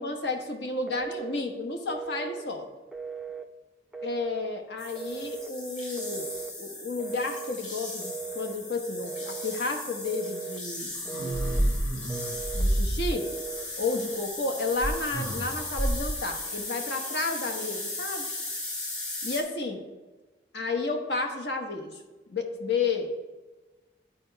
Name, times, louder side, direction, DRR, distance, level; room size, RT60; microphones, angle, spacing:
voice 1, 0.0-2.7 4.0-11.9 12.5-13.3 13.8-18.4 19.2-19.8 20.5-22.0 22.3-23.1, left 3 dB, 75° left, 4 dB, 1.0 m, -32 dB
Telephone, 0.9-1.4 1.9-2.5 2.9-3.5 3.9-4.5 5.0-5.5 6.0-6.5 7.0-7.6 8.0-8.6 9.0-9.6 10.1-10.6 11.0-11.6 12.1-12.7 13.1-13.7, right 6 dB, 5° right, 0.3 m, -38 dB
sound 1, 4.8-19.4, left 2 dB, 40° left, 2.1 m, -37 dB
sound 2, 10.9-13.4 14.8-16.2, right 1 dB, 20° left, 1.0 m, -29 dB
10.5 x 4.4 x 4.5 m, 1.2 s
head